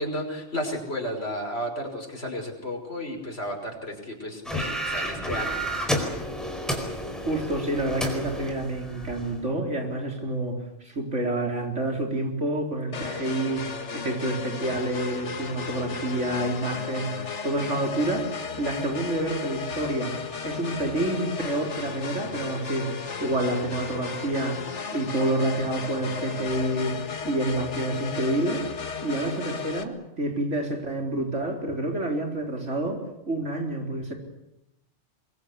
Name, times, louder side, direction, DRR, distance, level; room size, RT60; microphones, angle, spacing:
voice 1, 0.0-6.0, equal, 60° left, 1 dB, 5.9 m, -33 dB
sound 1, 4.5-9.4, equal, ahead, 4.6 m, -31 dB
voice 2, 7.3-18.3 18.6-20.2 20.4-22.9 23.2-24.6 24.9-27.0 27.2-28.7 29.0-34.1, right 1 dB, 85° right, 3 dB, 4.5 m, -28 dB
sound 2, 12.9-29.8, left 5 dB, 80° left, 2.0 m, -35 dB
24.5 x 22.5 x 8.4 m, 0.85 s
omnidirectional pair, 1.2 m